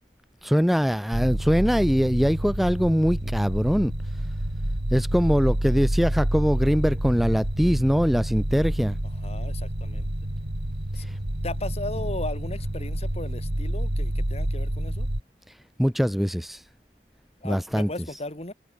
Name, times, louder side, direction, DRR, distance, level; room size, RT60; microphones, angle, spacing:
voice 1, 0.4-3.9 4.9-9.0 11.0-11.2 15.8-16.6 17.4-17.9, equal, ahead, 0.7 m, -22 dB
sound 1, 1.1-15.2, right 1 dB, 70° right, 2.9 m, -28 dB
voice 2, 9.2-10.1 11.0-11.1 11.4-15.1 17.4-18.5, left 2 dB, 35° left, 3.7 m, -36 dB
head